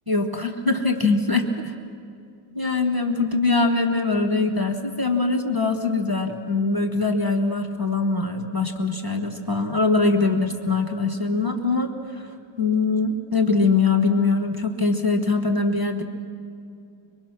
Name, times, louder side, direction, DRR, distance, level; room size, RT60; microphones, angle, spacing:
voice 1, 0.1-1.7 2.5-12.2 12.6-16.0, left 3 dB, 15° right, 4 dB, 0.9 m, -22 dB
25.5 x 23.5 x 6.1 m, 2.5 s
omnidirectional pair, 2.1 m